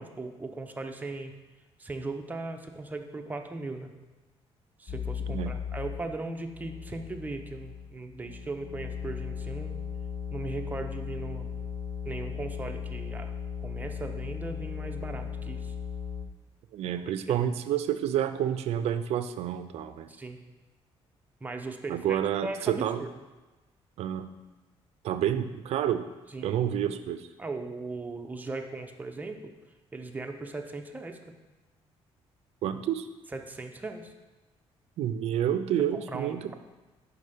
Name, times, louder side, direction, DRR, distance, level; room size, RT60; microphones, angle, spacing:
voice 1, 0.0-1.3 1.8-3.9 4.8-9.7 10.3-11.5 12.0-13.3 13.6-15.7 17.0-17.4 20.1-20.4 21.4-23.1 26.3-26.6 27.4-29.5 29.9-31.2 33.3-34.1 35.8-36.5, right 3 dB, 15° right, 4 dB, 0.6 m, -38 dB
sound 1, 4.9-6.1 6.4-16.3, left 7 dB, 35° left, 0.5 m, -37 dB
voice 2, 5.3-5.6 16.7-20.1 21.9-23.0 24.0-24.3 25.0-26.1 26.4-27.3 32.6-33.1 35.0-36.5, right 10 dB, 75° right, 12 dB, 0.4 m, -29 dB
5.5 x 4.6 x 5.0 m, 1.1 s
cardioid pair, 110°, 11 cm